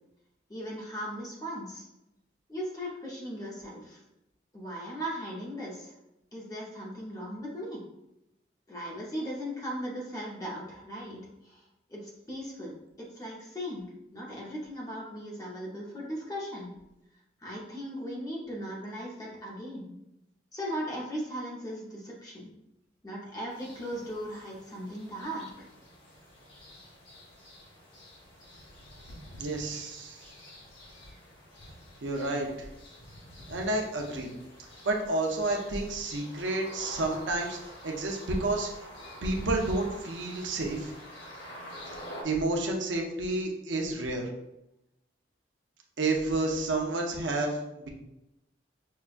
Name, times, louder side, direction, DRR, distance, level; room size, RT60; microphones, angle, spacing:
voice 1, 0.5-1.8 2.5-4.0 4.5-5.9 6.3-7.8 8.7-11.6 11.9-13.8 14.1-16.7 17.4-19.9 20.5-22.5 23.0-25.5, equal, 20° left, -3 dB, 0.8 m, -38 dB
sound 1, 23.5-42.2, equal, 90° left, 0.9 m, -48 dB
voice 2, 29.4-30.2 32.0-32.5 33.5-34.3 34.8-37.6 37.8-38.7 39.2-40.9 42.2-44.3 46.0-47.9, right 2 dB, 85° right, 1 dB, 0.7 m, -30 dB
5.5 x 2.3 x 2.5 m, 0.87 s
head